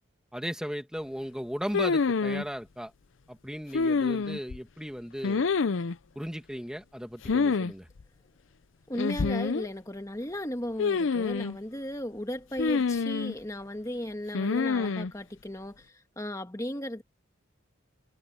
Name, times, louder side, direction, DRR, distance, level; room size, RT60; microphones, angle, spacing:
voice 1, 0.3-2.9 3.3-5.5 6.2-7.9, equal, 5° right, 2.0 m, -36 dB
sound 1, 1.7-2.4 3.7-4.6 5.2-6.0 7.2-7.7 8.0-8.1 9.0-9.7 10.8-11.6 12.6-13.4 14.3-15.1, left 4 dB, 75° left, 0.6 m, -27 dB
voice 2, 8.9-15.8 16.2-17.0, left 1 dB, 15° left, 1.7 m, -36 dB
head